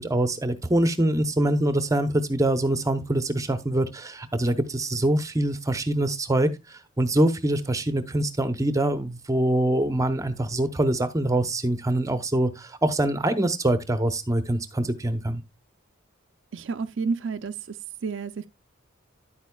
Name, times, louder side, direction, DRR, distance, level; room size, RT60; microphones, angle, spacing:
voice 1, 0.0-6.5 7.0-15.4, right 1 dB, 15° right, 0.7 m, -24 dB
voice 2, 16.5-17.8 18.0-18.5, right 5 dB, 60° right, 0.4 m, -30 dB
10.5 x 8.2 x 2.3 m
head